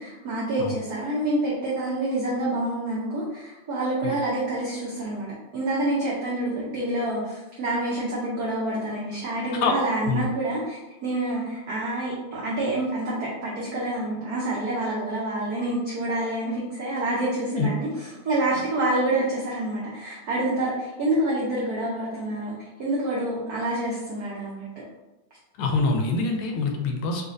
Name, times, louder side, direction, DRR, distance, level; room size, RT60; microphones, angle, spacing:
voice 1, 0.0-5.3 5.5-22.5 22.8-24.7, right 1 dB, 90° right, -5 dB, 0.8 m, -27 dB
voice 2, 25.6-27.2, left 4 dB, 80° left, 2 dB, 1.4 m, -25 dB
4.1 x 2.4 x 2.5 m, 1.0 s
omnidirectional pair, 2.4 m